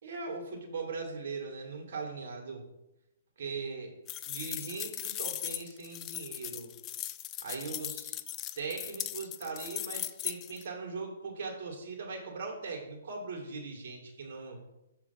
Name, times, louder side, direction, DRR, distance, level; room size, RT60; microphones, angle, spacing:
voice 1, 0.0-2.6 3.4-3.9 4.3-6.7 7.4-8.2 8.5-14.6, right 4 dB, 50° right, 0 dB, 2.4 m, -39 dB
sound 1, 4.1-10.6, left 13 dB, 25° left, 0.3 m, -38 dB
6.9 x 4.3 x 5.9 m, 0.92 s
hypercardioid pair, 150°, 0 cm